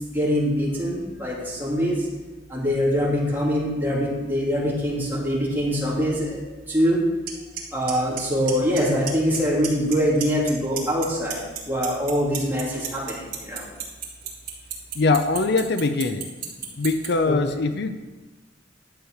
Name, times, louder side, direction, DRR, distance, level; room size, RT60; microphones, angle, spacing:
voice 1, 0.1-2.0 2.5-6.4 6.7-7.0 7.7-11.4 11.7-13.2 13.4-13.6 17.3-17.4, equal, 10° right, -6 dB, 3.2 m, -23 dB
Clock, 7.3-7.4 7.6-8.8 9.1-9.4 9.6-10.5 10.8-17.1, right 10 dB, 50° right, 2.5 m, -30 dB
voice 2, 14.9-16.3 16.8-17.9, left 3 dB, 65° left, 8 dB, 0.6 m, -22 dB
11.0 x 7.8 x 4.9 m, 1.2 s
head